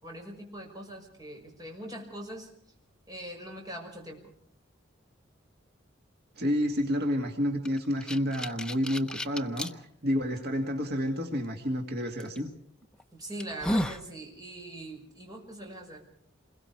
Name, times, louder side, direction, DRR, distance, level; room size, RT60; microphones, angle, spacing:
voice 1, 0.0-2.5 3.1-4.3 13.1-16.1, right 1 dB, 20° right, 1 dB, 5.9 m, -42 dB
voice 2, 6.4-12.5, equal, 55° right, 3 dB, 2.3 m, -30 dB
sound 1, 7.6-9.7 10.4-10.5 12.2-12.4 12.9-13.0 13.4-14.1, equal, 5° left, 0.8 m, -32 dB
28.5 x 21.5 x 4.8 m, 0.65 s
head